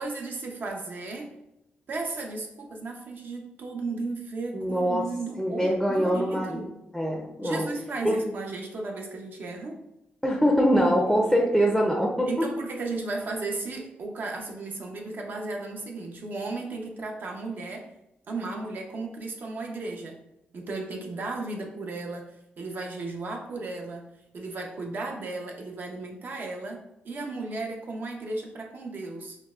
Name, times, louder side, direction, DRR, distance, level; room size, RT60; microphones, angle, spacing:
voice 1, 0.0-1.3 1.9-6.8 7.4-9.8 12.3-17.9 18.3-20.2 20.5-22.3 22.6-24.0 24.3-26.8 27.0-29.4, right 3 dB, 55° right, 1 dB, 0.7 m, -35 dB
voice 2, 4.5-5.0 5.4-6.6 6.9-7.7 8.0-8.2 10.2-12.3, equal, ahead, 0 dB, 0.5 m, -23 dB
5.5 x 2.1 x 2.4 m, 0.88 s
cardioid pair, 90°, 4 cm